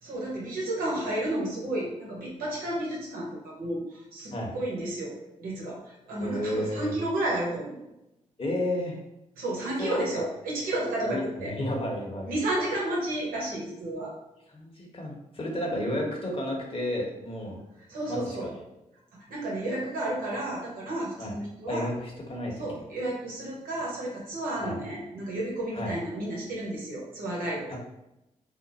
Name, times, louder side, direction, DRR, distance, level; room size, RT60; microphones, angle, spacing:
voice 1, 0.0-7.8 9.4-11.5 12.3-14.1 17.9-18.5 19.1-21.9 22.6-27.8, right 1 dB, 85° right, -4 dB, 1.0 m, -32 dB
voice 2, 6.2-6.9 8.4-9.0 9.8-10.2 11.0-12.3 14.5-17.6 18.1-18.6 21.2-21.3 21.7-22.8 24.6-24.8 25.7-25.9 27.7-27.8, left 1 dB, 40° left, -1 dB, 1.1 m, -32 dB
2.6 x 2.2 x 4.0 m, 0.90 s
supercardioid pair, 45°, 15 cm